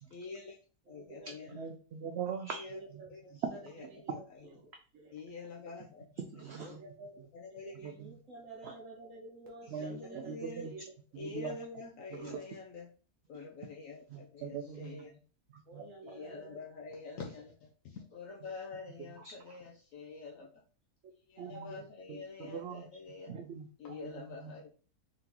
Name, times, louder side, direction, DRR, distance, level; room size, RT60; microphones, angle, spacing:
voice 1, 0.1-0.6 0.9-1.6 2.5-2.8 3.1-4.4 5.1-6.8 7.3-7.9 9.7-10.7 11.1-12.9 13.3-15.2 16.0-20.6 21.3-23.4 23.8-24.7, left 4 dB, 70° left, 0 dB, 0.9 m, -47 dB
voice 2, 0.9-1.6 2.6-3.1 3.5-4.7 4.9-5.2 6.6-10.9 11.2-11.3 14.8-14.9 15.7-16.6 21.7-21.8, right 3 dB, 60° right, 1 dB, 1.0 m, -51 dB
voice 3, 1.5-2.7 2.9-3.0 3.4-3.5 4.1-4.2 6.3-6.8 7.8-8.1 8.6-8.7 9.7-10.7 11.1-11.6 12.1-12.4 14.1-15.0 15.5-15.9 19.2-19.3 21.4-21.7 22.1-22.9 23.3-24.1 24.4-24.5, right 6 dB, 85° right, 5 dB, 0.5 m, -41 dB
3.8 x 3.6 x 2.9 m, 0.39 s
omnidirectional pair, 1.6 m